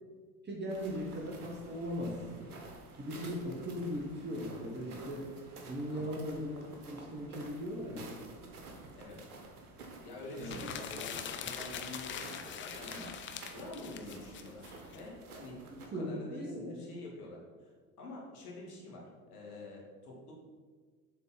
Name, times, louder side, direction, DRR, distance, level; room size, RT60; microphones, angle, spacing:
voice 1, 0.4-2.5 3.0-5.3 5.6-6.6 6.9-8.2 10.4-10.7 15.7-16.8, equal, 25° right, -2 dB, 1.3 m, -38 dB
sound 1, 0.7-15.9, right 2 dB, 90° right, 1.0 m, -51 dB
voice 2, 10.0-13.1 13.5-15.7 15.9-17.7 18.0-20.3, left 2 dB, 85° left, -3 dB, 1.8 m, -47 dB
sound 2, 10.3-15.0, left 8 dB, 25° left, 0.5 m, -43 dB
6.8 x 3.8 x 4.1 m, 1.5 s
hypercardioid pair, 75°, 44 cm